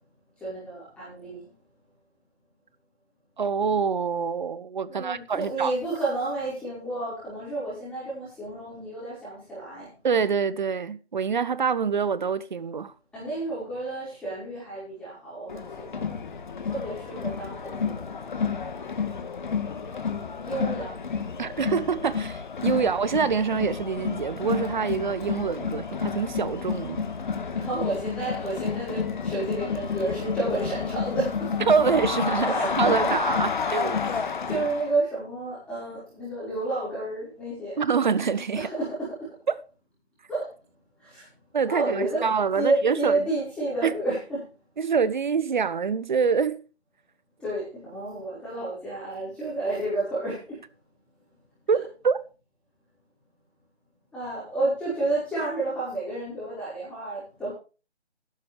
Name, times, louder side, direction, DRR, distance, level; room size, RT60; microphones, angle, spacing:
voice 1, 0.4-1.5 4.9-9.9 13.1-16.1 16.7-18.2 20.4-21.0 27.5-31.6 32.4-33.2 33.8-37.8 38.5-39.4 40.3-40.5 41.0-41.3 41.7-42.2 42.5-44.5 47.4-50.6 54.1-57.5, right 2 dB, 5° left, 5.0 m, -31 dB
voice 2, 3.4-5.7 10.0-12.9 21.4-27.1 31.7-34.0 37.8-38.7 39.5-39.6 41.5-43.1 43.8-43.9 44.8-46.6 51.7-52.2, right 6 dB, 45° right, 1.0 m, -25 dB
Crowd, 15.5-34.9, left 6 dB, 45° left, 1.7 m, -30 dB
13.0 x 11.5 x 3.4 m
figure-of-eight pair, 155°, 33 cm